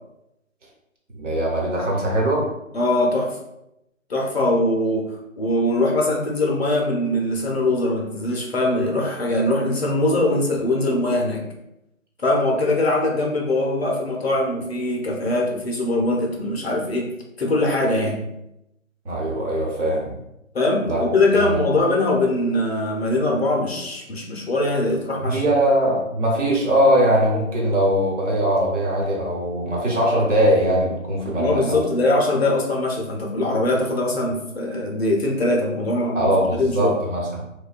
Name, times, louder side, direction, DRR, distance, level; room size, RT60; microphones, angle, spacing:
voice 1, 1.1-2.5 19.0-20.2 20.8-21.6 25.2-31.8 36.1-37.4, right 1 dB, 60° right, -3 dB, 1.0 m, -21 dB
voice 2, 2.7-3.3 4.1-5.1 5.4-11.4 12.2-17.1 17.4-18.2 20.5-25.4 31.4-36.3 36.6-37.0, left 2 dB, 50° left, 0 dB, 0.5 m, -22 dB
2.6 x 2.2 x 2.3 m, 0.85 s
figure-of-eight pair, 160°, 41 cm